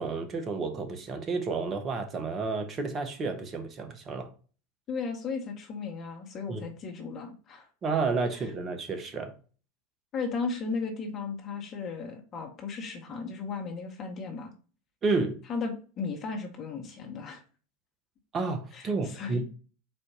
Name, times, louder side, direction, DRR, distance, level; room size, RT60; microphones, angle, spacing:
voice 1, 0.0-4.3 6.5-6.6 7.8-9.3 15.0-15.4 18.3-19.4, right 4 dB, 35° right, 1.0 m, -31 dB
voice 2, 4.9-7.7 10.1-14.5 15.5-17.4 18.7-19.4, left 4 dB, 40° left, 1.2 m, -35 dB
4.4 x 2.6 x 4.6 m
hypercardioid pair, 85°, 0 cm